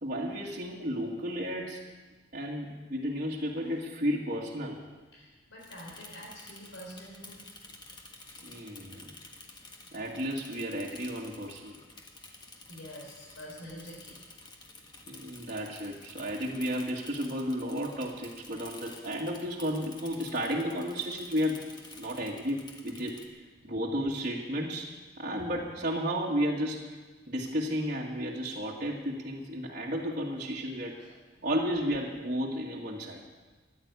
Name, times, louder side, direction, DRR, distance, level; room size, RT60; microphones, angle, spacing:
voice 1, 0.0-1.9 2.3-4.8 8.4-9.1 9.9-11.8 15.1-21.7 21.9-23.2 23.6-26.9 27.3-31.0 31.4-33.2, equal, 40° right, -4 dB, 1.8 m, -33 dB
voice 2, 5.1-7.4 9.6-9.7 12.7-14.2 23.6-23.7 30.9-31.5, equal, 90° left, -4 dB, 4.0 m, -47 dB
Bicycle / Mechanisms, 5.6-23.3, left 3 dB, 20° left, 1.6 m, -51 dB
14.5 x 11.0 x 8.2 m, 1.3 s
head